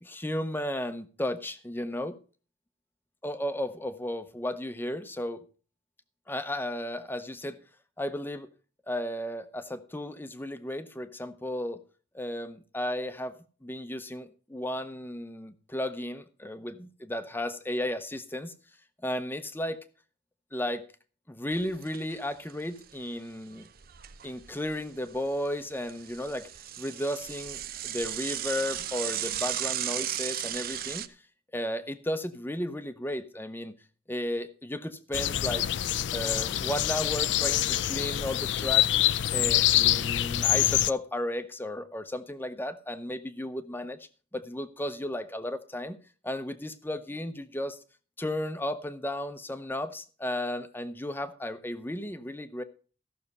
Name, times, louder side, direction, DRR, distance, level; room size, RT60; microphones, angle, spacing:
voice 1, 0.0-2.2 3.2-5.4 6.3-7.6 8.0-8.5 8.9-11.8 12.1-13.3 13.6-18.5 19.0-19.8 20.5-20.8 21.3-23.7 24.2-26.5 26.8-31.1 31.5-33.8 34.1-35.7 36.1-38.9 39.3-46.0 46.2-47.8 48.2-52.6, left 1 dB, 10° left, 0.7 m, -34 dB
Bicycle / Mechanisms, 21.5-22.2 22.5-22.6 22.8-22.9 23.6-24.8 25.1-31.1, right 11 dB, 50° right, 0.6 m, -35 dB
sound 1, 35.1-40.9, left 13 dB, 70° left, 0.4 m, -25 dB
14.5 x 6.5 x 5.3 m
head